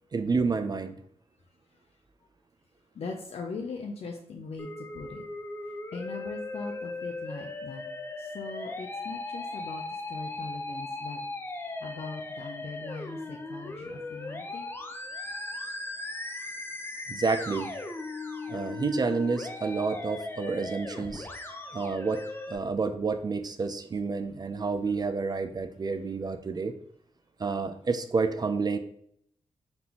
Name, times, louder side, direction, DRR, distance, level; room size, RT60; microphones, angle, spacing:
voice 1, 0.1-1.0 17.1-17.7 18.5-21.3 21.7-26.7 27.4-28.8, right 4 dB, 35° right, 8 dB, 0.4 m, -29 dB
voice 2, 3.0-5.2 5.9-7.8 8.2-9.8 10.1-11.2 11.8-14.7, left 4 dB, 65° left, 1 dB, 0.5 m, -40 dB
Musical instrument, 4.6-22.6, left 2 dB, 20° left, 0.6 m, -38 dB
4.0 x 3.6 x 2.8 m, 0.68 s
cardioid pair, 75°, 11 cm